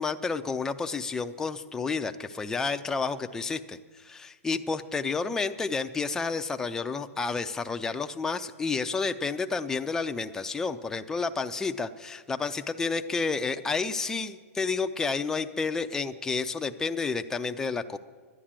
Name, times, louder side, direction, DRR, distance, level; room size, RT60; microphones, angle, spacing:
voice 1, 0.0-18.0, left 4 dB, 5° left, 8 dB, 0.4 m, -30 dB
11.0 x 10.0 x 7.4 m, 1.4 s
hypercardioid pair, 150°, 8 cm